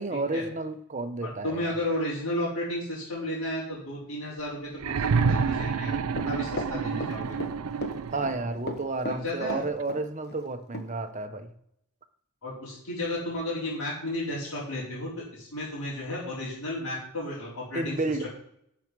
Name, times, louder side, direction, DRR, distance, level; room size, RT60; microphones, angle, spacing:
voice 1, 0.0-1.8 8.1-11.5 17.7-18.3, right 2 dB, 35° right, 7 dB, 0.9 m, -31 dB
voice 2, 1.2-6.0 6.2-7.3 9.0-9.6 12.4-18.3, left 1 dB, 80° left, -9 dB, 4.3 m, -33 dB
sound 1, 4.8-8.6 9.8-9.9, right 5 dB, 75° right, 0.4 m, -28 dB
Run, 6.2-7.5 7.8-8.4 8.7-10.0 10.3-10.4 10.7-10.9, left 1 dB, 45° left, 1.2 m, -35 dB
11.5 x 6.3 x 4.7 m, 0.73 s
head